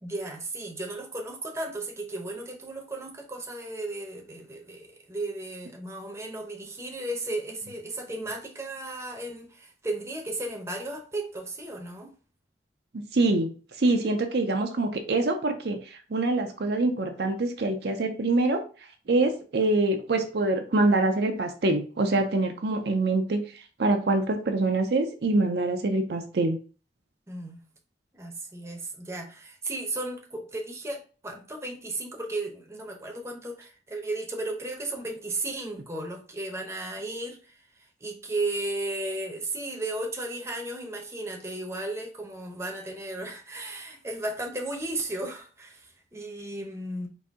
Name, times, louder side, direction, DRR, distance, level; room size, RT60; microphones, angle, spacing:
voice 1, 0.0-12.1 27.3-27.7 28.1-37.6 38.0-47.1, right 2 dB, 15° right, 0.7 m, -35 dB
voice 2, 12.9-13.5 13.8-18.6 19.1-26.6, right 2 dB, 65° right, 0.5 m, -25 dB
4.0 x 2.6 x 3.5 m
head